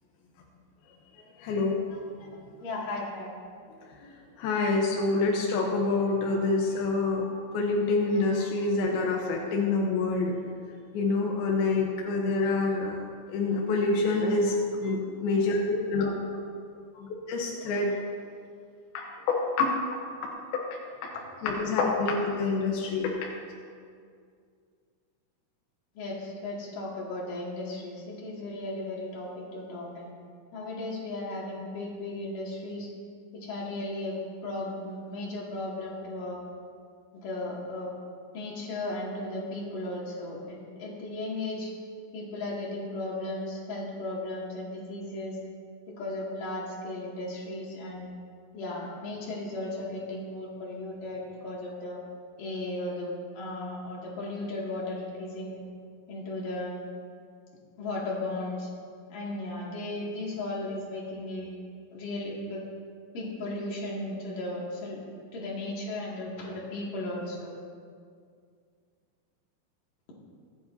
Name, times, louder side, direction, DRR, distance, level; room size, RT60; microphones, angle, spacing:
voice 1, 1.4-2.0 4.0-7.3 7.5-10.3 10.9-13.0 13.3-16.4 17.0-18.0 18.9-19.1 21.0-21.1 21.4-23.1, left 3 dB, 80° left, -1 dB, 2.2 m, -27 dB
voice 2, 2.6-3.3 25.9-30.1 30.5-32.9 33.3-34.1 34.4-36.4 37.1-37.9 38.3-41.7 42.1-45.3 46.0-48.1 48.5-52.0 52.4-55.6 56.1-56.8 57.8-58.7 59.1-61.5 61.9-62.6 63.1-65.0 65.3-67.5, left 2 dB, 50° left, -5 dB, 3.4 m, -35 dB
24.0 x 9.6 x 2.7 m, 2.2 s
omnidirectional pair, 5.7 m